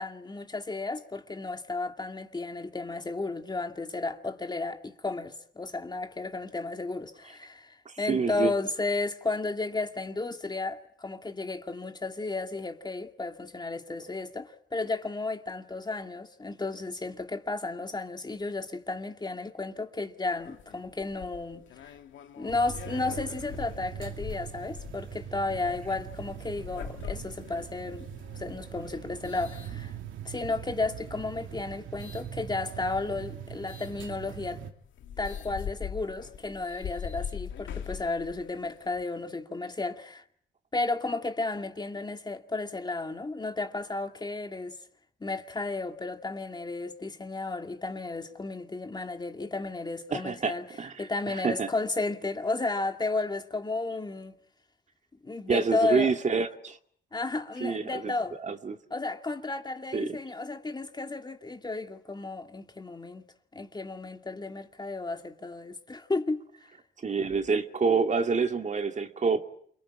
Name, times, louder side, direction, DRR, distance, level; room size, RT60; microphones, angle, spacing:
voice 1, 0.0-21.9 22.4-28.1 28.3-29.9 30.2-34.6 35.2-40.2 40.7-44.8 45.2-50.7 51.0-54.4 55.2-56.1 57.1-58.4 58.9-63.2 63.5-66.5, left 3 dB, 20° left, 2.3 m, -33 dB
voice 2, 7.9-8.5 50.1-50.9 51.3-51.7 55.5-56.8 57.6-58.1 58.4-58.8 59.9-60.2 67.0-69.4, right 5 dB, 35° right, 2.3 m, -27 dB
sound 1, 20.4-30.4 31.0-32.3 33.7-33.9 34.5-34.6 34.8-39.0, left 8 dB, 75° left, 2.3 m, -42 dB
sound 2, 22.5-34.7, right 9 dB, 80° right, 2.5 m, -42 dB
28.5 x 22.0 x 8.9 m
cardioid pair, 90°, 20 cm